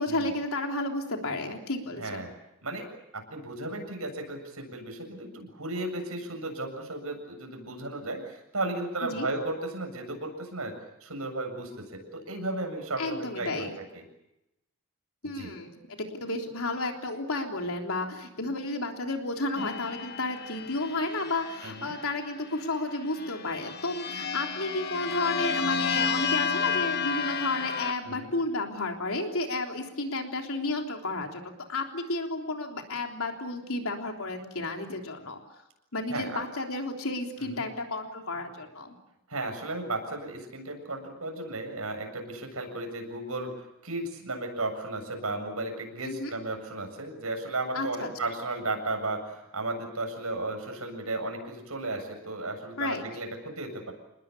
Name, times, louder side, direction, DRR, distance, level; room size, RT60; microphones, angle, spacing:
voice 1, 0.0-2.2 9.0-9.3 13.0-13.8 15.2-35.4 35.9-38.9 46.0-46.3 47.7-48.1 52.8-53.0, left 2 dB, 75° left, 3 dB, 3.5 m, -32 dB
voice 2, 2.0-2.3 2.6-10.7 11.0-13.7 13.9-14.0 15.4-15.5 21.6-21.9 28.0-28.3 36.1-36.4 37.4-37.6 39.3-43.5 43.8-53.9, right 2 dB, 80° right, 4 dB, 7.6 m, -34 dB
sound 1, 19.6-22.3 23.1-27.9, left 6 dB, 45° left, 2.3 m, -31 dB
28.5 x 20.5 x 8.5 m, 0.88 s
head